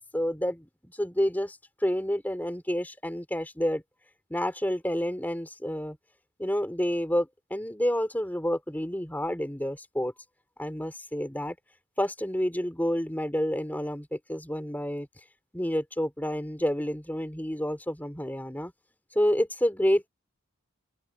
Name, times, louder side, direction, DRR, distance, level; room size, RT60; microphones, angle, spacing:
voice 1, 0.1-3.8 4.3-6.0 6.4-10.1 10.6-11.6 12.0-15.1 15.5-18.7 19.1-20.1, equal, 10° left, 2.9 m, -29 dB
open air
head